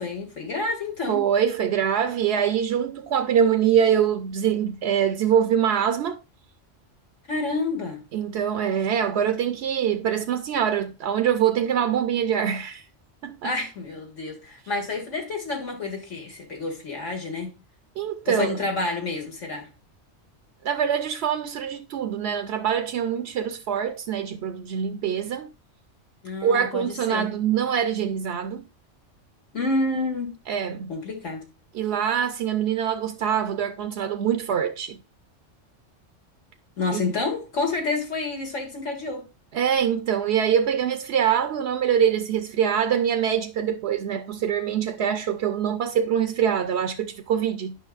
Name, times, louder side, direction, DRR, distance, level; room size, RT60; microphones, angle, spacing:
voice 1, 0.0-1.3 7.3-8.0 13.4-17.5 18.3-19.7 26.2-27.3 29.5-30.3 30.9-31.5 36.8-39.3, left 3 dB, 85° left, 2.4 m, -29 dB
voice 2, 1.1-6.2 8.1-12.8 13.2-13.5 18.0-18.6 20.6-25.5 26.4-28.7 30.5-30.9 31.7-35.0 36.9-37.0 39.5-47.8, right 8 dB, 65° right, 0.8 m, -24 dB
10.0 x 5.7 x 2.4 m
omnidirectional pair, 1.2 m